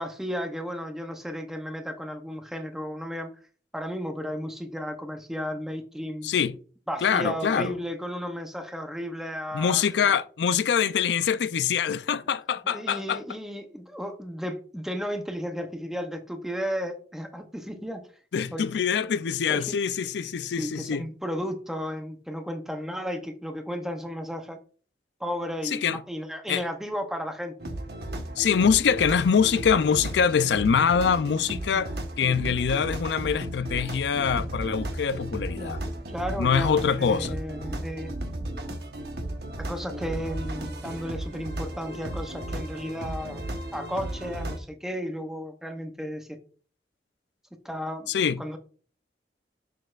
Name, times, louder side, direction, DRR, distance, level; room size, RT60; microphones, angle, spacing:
voice 1, 0.0-3.3 3.7-6.3 6.9-10.1 12.6-18.0 18.5-18.7 19.5-19.8 20.6-24.6 25.2-27.5 35.5-35.8 36.1-38.5 39.6-43.4 43.7-46.4 47.6-48.1 48.4-48.6, equal, 5° right, 0.6 m, -34 dB
voice 2, 6.2-6.6 7.0-7.7 9.5-13.2 18.3-21.1 25.6-26.0 26.5-26.6 28.4-35.8 36.4-37.4 48.1-48.4, left 7 dB, 80° left, 0.4 m, -24 dB
sound 1, 27.6-44.6, right 1 dB, 60° right, 1.1 m, -35 dB
6.5 x 6.5 x 2.4 m
head